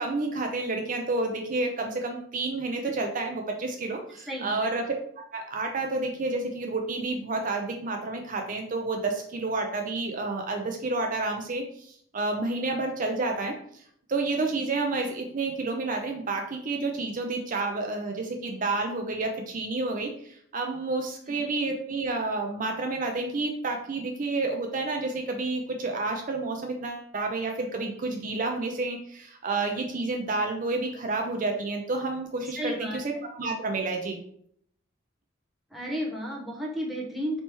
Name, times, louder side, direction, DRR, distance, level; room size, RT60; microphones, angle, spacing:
voice 1, 0.0-4.8 5.2-13.5 14.1-34.2, right 3 dB, 45° right, 3 dB, 0.5 m, -30 dB
voice 2, 4.3-4.7 21.3-21.5 32.6-33.0 35.7-37.4, equal, ahead, -3 dB, 0.8 m, -33 dB
3.3 x 2.9 x 4.4 m, 0.65 s
head